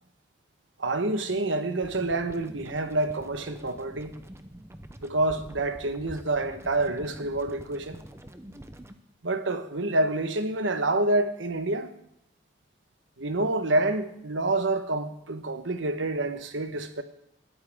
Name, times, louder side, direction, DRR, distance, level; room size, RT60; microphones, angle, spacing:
voice 1, 0.8-4.1 5.0-8.0 9.2-11.9 13.2-17.0, right 2 dB, 90° right, 1.2 m, -27 dB
sound 1, 1.8-9.0, right 1 dB, 15° right, 0.7 m, -46 dB
20.5 x 13.5 x 3.6 m
head